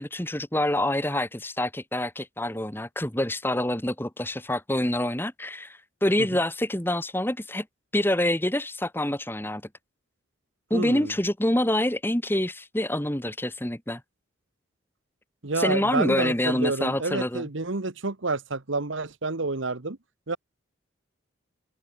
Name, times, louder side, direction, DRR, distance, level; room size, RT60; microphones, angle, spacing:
voice 1, 0.0-7.7 7.9-9.6 10.7-14.0 15.6-17.4, left 1 dB, 10° left, 1.4 m, -26 dB
voice 2, 10.7-11.1 15.4-20.0 20.3-20.4, right 3 dB, 70° right, 1.3 m, -29 dB
head